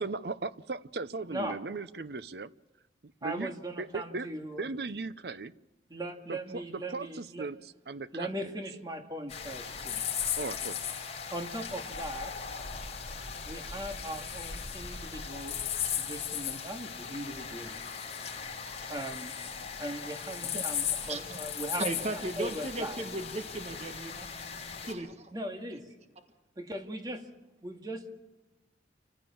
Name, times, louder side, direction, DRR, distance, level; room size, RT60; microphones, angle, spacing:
voice 1, 0.0-2.5 3.2-3.5 3.8-4.3 4.6-5.5 6.3-8.5 10.4-10.8, right 3 dB, 65° right, 15 dB, 0.7 m, -37 dB
voice 2, 3.2-4.6 5.9-7.5 8.1-10.0 11.3-12.3 13.4-15.6 16.0-17.8 18.9-19.3 19.8-23.0 25.3-25.9 26.6-27.2 27.6-28.1, right 1 dB, 20° right, 4 dB, 2.1 m, -39 dB
sound 1, 9.3-24.9, left 7 dB, 35° left, 4.3 m, -37 dB
voice 3, 21.8-24.3 24.6-25.3, right 2 dB, 35° right, 7 dB, 1.4 m, -36 dB
27.5 x 15.5 x 7.2 m, 1.1 s
head